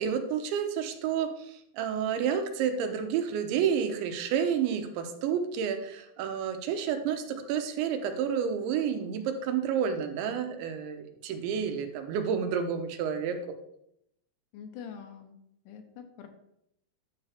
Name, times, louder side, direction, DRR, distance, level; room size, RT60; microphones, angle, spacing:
voice 1, 0.0-13.6, right 7 dB, 85° right, 6 dB, 3.3 m, -30 dB
voice 2, 14.5-15.4 15.7-16.3, left 7 dB, 75° left, 5 dB, 3.0 m, -44 dB
10.5 x 6.9 x 4.4 m, 0.78 s
omnidirectional pair, 5.1 m